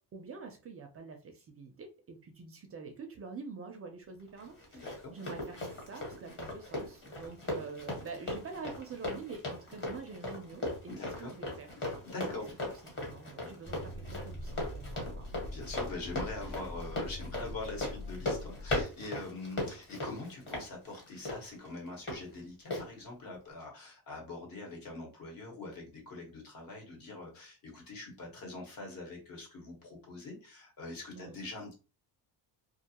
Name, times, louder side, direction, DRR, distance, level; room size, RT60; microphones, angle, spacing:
voice 1, 0.0-11.9 13.0-15.3 31.2-31.4, right 4 dB, 35° right, 4 dB, 0.4 m, -46 dB
Run, 4.4-22.2 22.7-22.8, left 2 dB, 30° left, 1.2 m, -38 dB
voice 2, 4.7-5.1 10.9-11.3 12.0-12.5 15.4-31.7, left 2 dB, 55° left, 0 dB, 1.1 m, -43 dB
sound 1, 13.6-18.8, left 1 dB, 75° left, 1.1 m, -43 dB
2.4 x 2.2 x 2.8 m, 0.33 s
cardioid pair, 145°, 41 cm